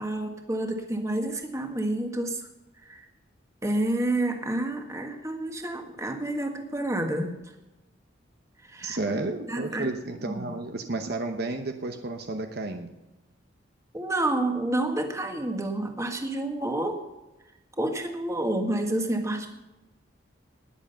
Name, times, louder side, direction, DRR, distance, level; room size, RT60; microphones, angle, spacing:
voice 1, 0.0-2.5 2.8-3.1 3.6-7.3 8.6-9.0 9.5-9.9 10.2-10.5 13.9-17.0 17.8-19.5, right 1 dB, 15° right, 3 dB, 1.7 m, -29 dB
voice 2, 8.8-12.9, right 2 dB, 55° right, 6 dB, 0.9 m, -32 dB
20.0 x 7.6 x 5.6 m, 1.0 s
head